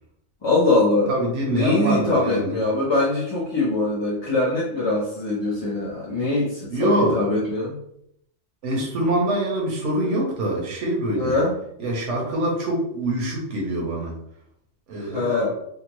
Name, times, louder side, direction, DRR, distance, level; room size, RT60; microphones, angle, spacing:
voice 1, 0.4-1.1 1.5-7.8 11.2-11.6 14.9-15.5, left 2 dB, 30° left, -7 dB, 0.6 m, -22 dB
voice 2, 1.1-2.6 6.7-7.2 8.6-11.4 11.8-14.1 14.9-15.4, right 1 dB, 80° right, -2 dB, 1.2 m, -24 dB
3.6 x 2.1 x 3.0 m, 0.76 s
omnidirectional pair, 1.2 m